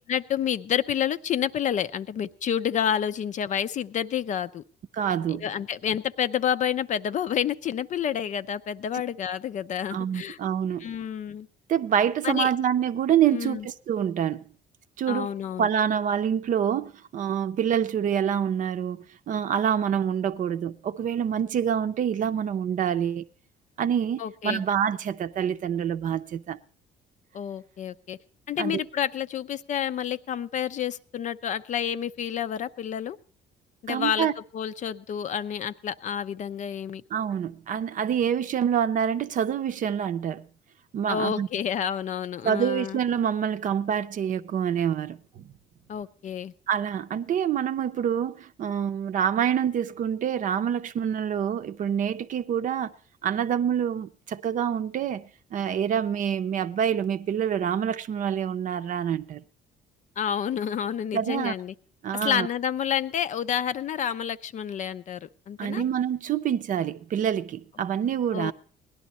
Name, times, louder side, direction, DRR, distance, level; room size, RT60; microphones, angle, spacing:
voice 1, 0.1-4.6 5.3-10.4 10.8-11.5 12.2-12.5 13.3-13.7 15.1-15.7 24.2-24.6 27.3-28.2 28.5-33.2 33.8-34.3 34.5-37.0 41.1-43.0 45.9-46.5 60.2-61.7 62.1-65.8 68.3-68.5, left 9 dB, 45° left, 0.5 m, -29 dB
voice 2, 4.9-5.5 9.9-10.9 11.7-14.4 15.0-15.3 15.6-23.2 23.8-26.6 28.6-28.8 33.9-34.3 37.1-40.5 40.9-41.5 42.4-45.5 46.7-52.9 53.2-59.4 61.1-61.5 62.0-62.5 65.6-68.5, right 8 dB, 50° right, 0.6 m, -26 dB
17.5 x 11.0 x 4.1 m
cardioid pair, 110°, 17 cm